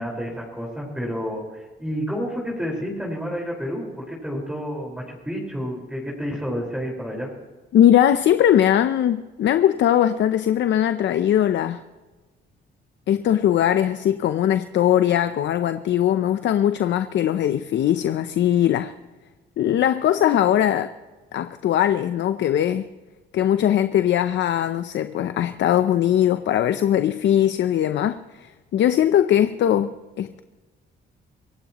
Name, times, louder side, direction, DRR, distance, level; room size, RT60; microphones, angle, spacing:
voice 1, 0.0-7.3, equal, 5° right, -2 dB, 4.8 m, -30 dB
voice 2, 7.7-11.8 13.1-18.9 19.6-20.9 21.3-22.9 23.3-28.2 28.7-30.4, left 11 dB, 65° left, 11 dB, 0.7 m, -20 dB
26.0 x 16.5 x 3.0 m, 1.2 s
cardioid pair, 90°, 20 cm